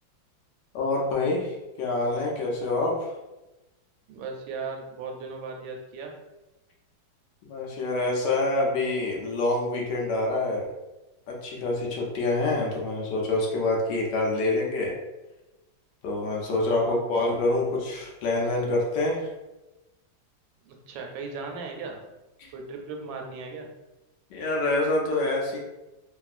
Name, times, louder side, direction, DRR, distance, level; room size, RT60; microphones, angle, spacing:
voice 1, 0.7-3.1 7.5-10.7 11.3-14.9 16.0-19.3 22.4-22.5 24.3-25.6, left 2 dB, 70° left, -2 dB, 1.2 m, -26 dB
voice 2, 4.1-6.1 16.6-17.0 20.7-22.1 22.5-23.7, right 4 dB, 80° right, 2 dB, 1.3 m, -37 dB
3.0 x 2.6 x 2.4 m, 1.0 s
omnidirectional pair, 2.1 m